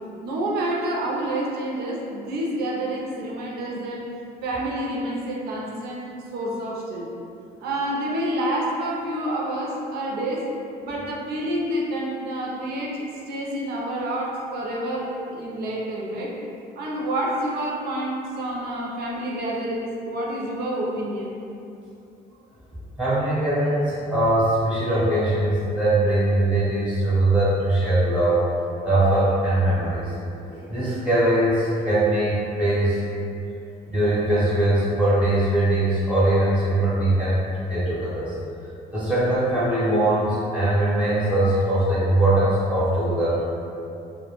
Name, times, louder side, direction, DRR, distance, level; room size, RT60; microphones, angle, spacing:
voice 1, 0.2-4.1 4.4-7.1 7.6-10.5 10.8-16.3 16.8-21.4, right 1 dB, 70° right, -3 dB, 0.5 m, -28 dB
voice 2, 23.0-28.4 28.8-30.0 30.5-33.0 33.9-37.4 37.7-38.3 38.9-43.5, right 1 dB, 5° right, -12 dB, 0.6 m, -21 dB
2.1 x 2.1 x 2.9 m, 2.6 s
cardioid pair, 110°, 17 cm